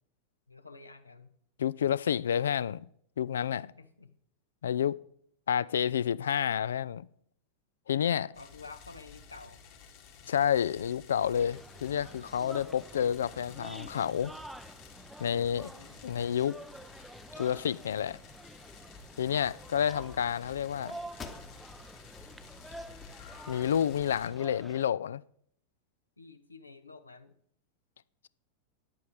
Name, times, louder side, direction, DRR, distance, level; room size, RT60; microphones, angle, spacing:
voice 1, 0.5-1.3 3.8-4.1 8.3-9.6 15.7-16.0 26.2-27.3, left 4 dB, 80° left, 0.9 m, -50 dB
voice 2, 1.6-2.9 3.2-3.7 4.6-4.9 5.5-7.1 7.9-8.3 10.3-14.3 15.2-15.7 16.0-16.6 17.4-18.2 19.2-21.0 23.5-25.2, left 9 dB, 65° left, 0.3 m, -29 dB
sound 1, 8.3-24.3, left 6 dB, 50° left, 2.0 m, -53 dB
sound 2, 11.4-24.8, right 1 dB, 5° right, 0.5 m, -48 dB
sound 3, 21.2-22.0 22.4-22.5 23.1-24.0, left 5 dB, 25° left, 1.2 m, -48 dB
10.5 x 8.4 x 5.1 m
figure-of-eight pair, 90°, 0 cm